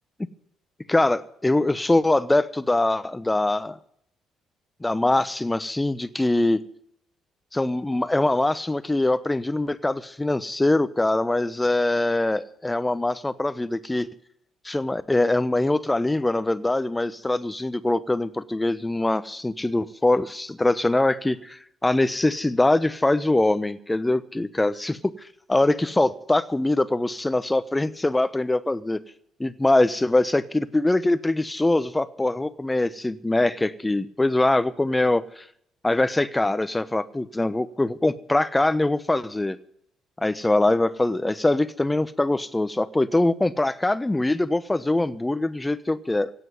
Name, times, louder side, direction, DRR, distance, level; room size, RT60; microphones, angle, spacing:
voice 1, 0.9-3.8 4.8-6.6 7.5-14.1 14.6-25.1 25.5-29.0 29.4-35.4 35.8-39.6 40.2-46.3, left 2 dB, 15° left, 16 dB, 1.0 m, -23 dB
17.0 x 8.1 x 9.4 m, 0.68 s
figure-of-eight pair, 45°, 0 cm